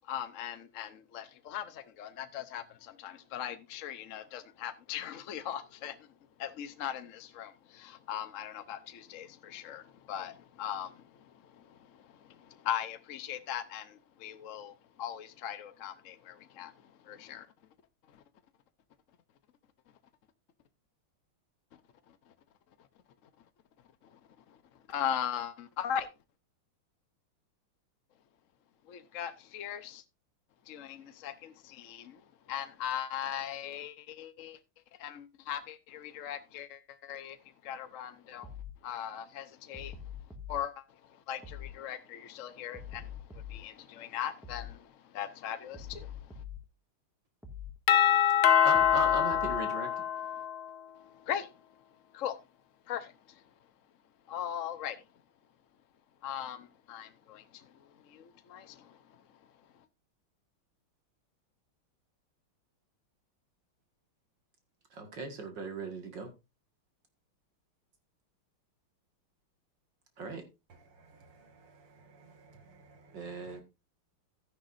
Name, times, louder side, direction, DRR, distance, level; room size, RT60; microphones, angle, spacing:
voice 1, 0.1-6.0 6.4-11.0 11.7-11.8 12.5-16.7 17.1-17.5 24.9-26.1 28.9-30.0 30.7-32.2 32.5-34.6 35.0-37.4 37.6-38.5 38.8-39.9 40.5-40.8 41.3-44.9 45.1-46.1 51.3-51.5 52.1-52.4 52.9-53.1 54.3-55.0 56.2-57.6 58.1-59.0, left 10 dB, 60° left, 0.8 m, -39 dB
sound 1, 38.4-38.8 39.7-40.6 41.4-41.8 42.7-43.6 44.4-44.8 45.7-46.6 47.4-47.8 48.7-49.6, left 7 dB, ahead, 1.7 m, -43 dB
Doorbell, 47.9-50.7, left 9 dB, 85° left, 1.6 m, -25 dB
voice 2, 48.6-49.9 64.9-66.3 70.2-70.4 73.1-73.6, right 3 dB, 60° right, 2.5 m, -38 dB
voice 3, 71.1-73.1 73.4-73.5, right 3 dB, 90° right, 3.0 m, -58 dB
13.0 x 10.5 x 2.6 m
omnidirectional pair, 2.3 m